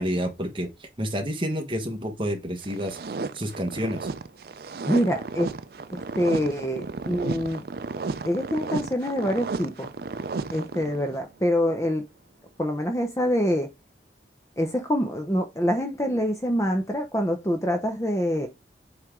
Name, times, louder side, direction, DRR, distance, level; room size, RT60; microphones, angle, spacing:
voice 1, 0.0-3.0 3.3-4.1, equal, 30° right, 1.3 m, -29 dB
sound 1, 2.6-11.2, right 4 dB, 55° right, 0.4 m, -33 dB
voice 2, 4.9-5.5 5.9-7.6 8.2-9.9 10.5-12.0 12.6-13.7 14.6-18.5, equal, 15° left, 0.7 m, -25 dB
7.6 x 3.4 x 3.7 m
head